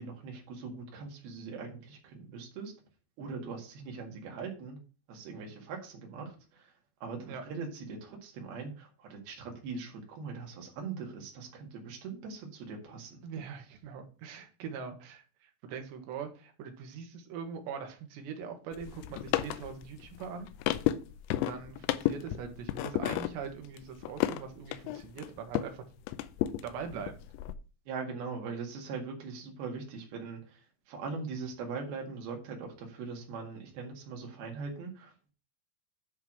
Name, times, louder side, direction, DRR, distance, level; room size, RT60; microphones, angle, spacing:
voice 1, 0.0-2.7 3.2-4.8 5.1-6.7 7.0-13.2 27.9-30.6 30.9-35.3, right 4 dB, 65° right, 1 dB, 3.6 m, -41 dB
voice 2, 13.2-20.5 21.3-25.8 26.6-27.2, right 6 dB, 80° right, 5 dB, 3.4 m, -42 dB
sound 1, 18.7-25.8 26.1-27.6, left 13 dB, 85° left, 2.9 m, -33 dB
10.5 x 3.6 x 6.0 m, 0.36 s
omnidirectional pair, 5.1 m